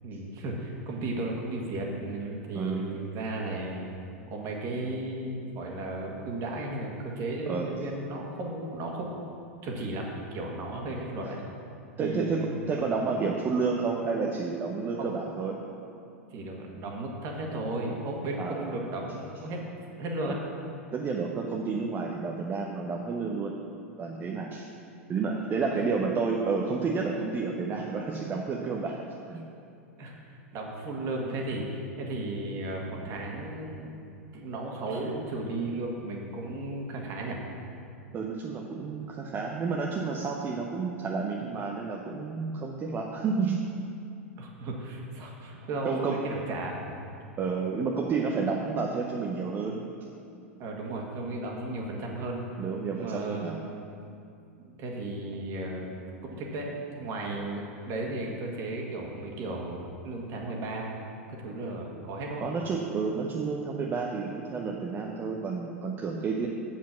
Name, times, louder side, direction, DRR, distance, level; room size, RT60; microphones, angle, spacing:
voice 1, 0.0-3.8 4.3-9.1 9.6-11.4 12.0-12.6 15.0-15.1 16.3-19.6 20.0-20.4 30.0-34.0 34.3-37.4 44.4-47.0 50.6-52.4 52.9-53.5 54.6-55.9 56.2-56.7 57.0-60.9 61.3-62.4, right 2 dB, 45° right, -1 dB, 1.9 m, -35 dB
voice 2, 2.5-2.9 7.5-7.7 12.0-15.6 18.4-18.8 20.3-20.4 20.9-23.5 24.0-24.7 25.1-29.0 29.3-29.4 38.1-43.6 45.8-46.2 47.4-49.8 52.6-53.6 62.4-66.5, right 4 dB, 30° right, 0 dB, 0.8 m, -30 dB
7.3 x 7.3 x 5.9 m, 2.6 s
hypercardioid pair, 95°, 8 cm